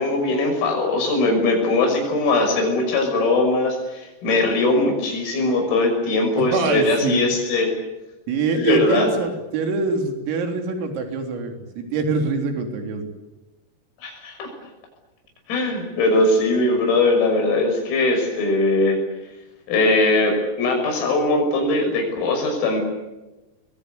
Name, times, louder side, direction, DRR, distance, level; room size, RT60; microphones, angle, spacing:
voice 1, 0.0-7.7 8.6-9.1 14.0-14.5 15.5-19.0 19.7-22.8, left 2 dB, 85° left, 3 dB, 8.8 m, -20 dB
voice 2, 6.5-7.3 8.3-13.1, right 4 dB, 80° right, 5 dB, 6.3 m, -24 dB
29.0 x 22.5 x 8.3 m, 1.1 s
omnidirectional pair, 6.0 m